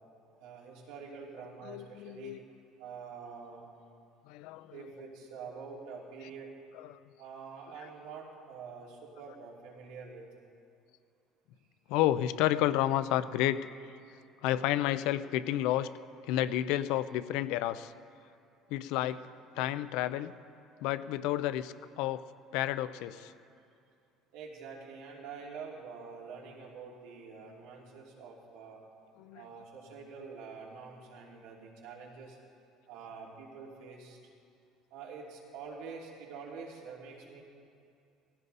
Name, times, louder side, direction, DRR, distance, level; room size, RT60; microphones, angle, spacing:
voice 1, 0.4-2.3 2.8-3.7 4.7-6.5 7.2-10.3 24.3-28.8 29.3-32.4 32.9-34.2 34.9-37.4, right 5 dB, 90° right, -2 dB, 3.0 m, -46 dB
voice 2, 1.7-2.4 4.3-4.7 11.9-13.6 14.4-15.9 16.3-17.9 18.7-19.2 19.6-20.3 20.8-22.2 22.5-23.3 29.2-29.4, left 13 dB, 70° left, 14 dB, 0.5 m, -30 dB
18.5 x 16.0 x 4.1 m, 2.5 s
cardioid pair, 165°, 0 cm